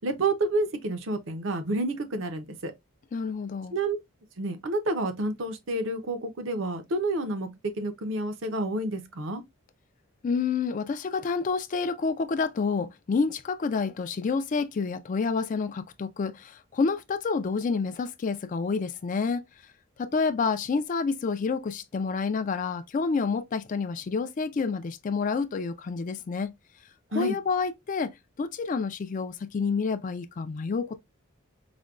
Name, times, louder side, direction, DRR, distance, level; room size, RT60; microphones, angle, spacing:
voice 1, 0.0-2.7 3.7-4.0 4.4-7.5 7.8-9.4 27.1-27.4, right 2 dB, 65° right, 0.7 m, -29 dB
voice 2, 3.1-3.8 10.2-19.4 20.0-26.5 27.1-28.1 28.4-31.0, left 4 dB, 40° left, 0.3 m, -28 dB
5.0 x 2.2 x 2.3 m
head